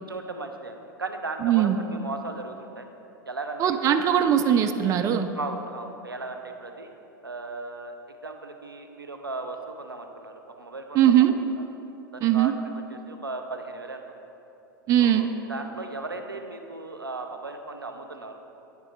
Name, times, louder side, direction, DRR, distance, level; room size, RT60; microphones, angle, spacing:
voice 1, 0.1-2.9 3.3-4.2 5.4-6.9 7.2-7.9 8.2-11.7 12.1-12.5 12.9-14.0 15.0-18.4, right 3 dB, 90° right, 5 dB, 0.5 m, -36 dB
voice 2, 1.4-1.8 3.6-5.3 10.9-11.3 12.2-12.5 14.9-15.3, right 10 dB, 30° right, 8 dB, 0.3 m, -20 dB
8.8 x 3.7 x 4.3 m, 2.9 s
figure-of-eight pair, 85°, 11 cm